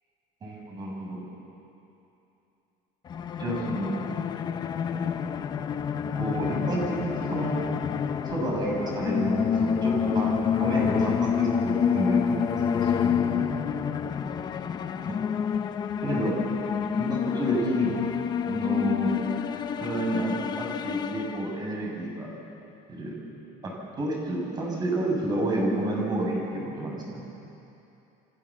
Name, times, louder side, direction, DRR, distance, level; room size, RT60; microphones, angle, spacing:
voice 1, 0.4-1.2 3.4-3.9 6.1-7.7 8.2-10.3 10.6-13.5 15.1-15.2 16.0-16.4 17.0-17.9 18.4-19.2 19.7-22.3 22.9-23.2 23.6-27.2, right 1 dB, 25° right, -1 dB, 6.9 m, -30 dB
sound 1, 3.1-21.8, left 7 dB, 25° left, 0.7 m, -28 dB
29.0 x 26.5 x 7.4 m, 2.9 s
cardioid pair, 175°, 18 cm